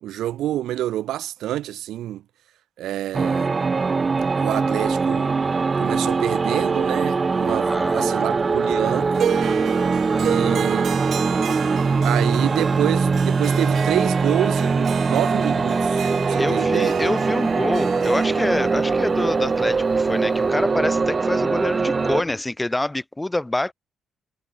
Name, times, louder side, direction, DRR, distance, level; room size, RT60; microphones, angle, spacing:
voice 1, 0.0-2.2 2.8-3.5 4.4-5.3 5.8-9.3 10.2-11.1 12.0-17.0, right 13 dB, 80° right, 1.1 m, -27 dB
sound 1, 3.1-22.2, right 4 dB, 30° right, 1.7 m, -22 dB
voice 2, 7.4-8.1 10.1-10.7 16.0-16.1 16.4-23.7, left 1 dB, 10° left, 5.9 m, -26 dB
Harp, 9.1-20.4, right 9 dB, 60° right, 1.1 m, -32 dB
sound 2, 14.2-22.4, left 4 dB, 30° left, 3.2 m, -41 dB
cardioid pair, 90°, 0 cm